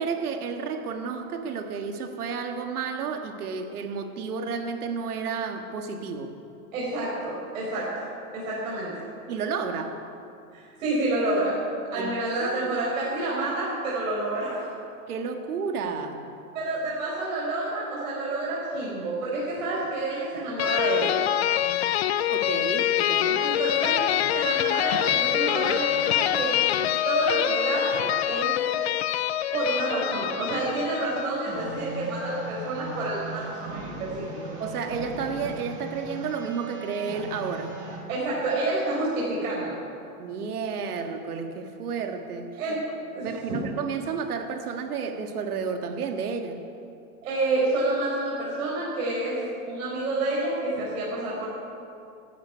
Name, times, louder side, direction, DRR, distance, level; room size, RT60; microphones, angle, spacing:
voice 1, 0.0-6.3 9.3-10.0 11.9-12.1 12.4-12.8 15.1-16.3 22.3-23.4 34.6-37.8 40.2-42.5 43.2-46.6, right 5 dB, 80° right, 5 dB, 1.8 m, -31 dB
voice 2, 6.7-8.1 8.3-9.0 10.5-14.7 16.5-21.1 23.4-24.0 24.3-26.6 27.0-28.5 29.5-34.4 38.1-39.8 42.6-42.8 43.1-43.6 47.2-49.4 49.7-51.5, right 2 dB, 60° right, -6 dB, 4.4 m, -28 dB
sound 1, 20.6-31.3, left 12 dB, 45° left, 0.5 m, -25 dB
sound 2, 31.5-38.0, right 2 dB, 15° right, 1.9 m, -38 dB
12.5 x 9.6 x 9.5 m, 2.6 s
supercardioid pair, 170°, 44 cm